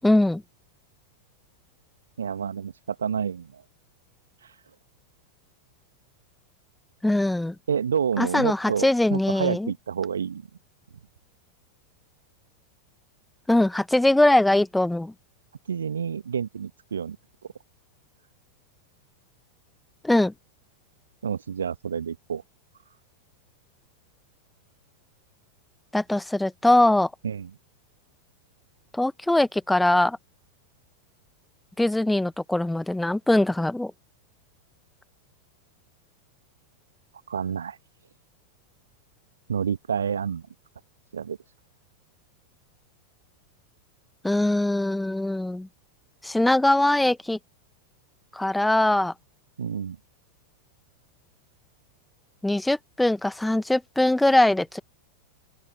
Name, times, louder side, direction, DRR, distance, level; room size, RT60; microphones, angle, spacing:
voice 1, 0.0-0.4 7.0-7.5 8.2-9.7 13.5-15.1 20.0-20.3 25.9-27.1 28.9-30.2 31.8-33.9 44.2-45.7 46.2-47.4 48.3-49.1 52.4-54.8, left 1 dB, 5° left, 1.2 m, -21 dB
voice 2, 2.2-3.6 7.7-10.5 15.7-17.2 21.2-22.4 27.2-27.5 37.3-37.8 39.5-40.4 41.1-41.4 49.6-50.0, right 7 dB, 70° right, 1.7 m, -29 dB
open air
figure-of-eight pair, 90°, 0 cm